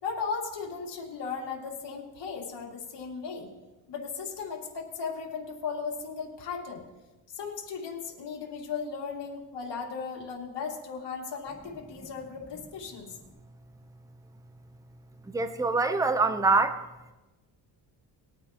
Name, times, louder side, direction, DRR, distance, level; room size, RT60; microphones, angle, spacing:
voice 1, 0.0-3.5 3.9-6.8 7.3-13.1, left 5 dB, 65° left, -1 dB, 2.6 m, -36 dB
voice 2, 15.3-16.8, right 3 dB, 10° right, 9 dB, 0.7 m, -24 dB
20.5 x 9.3 x 3.0 m, 1.1 s
cardioid pair, 120°, 44 cm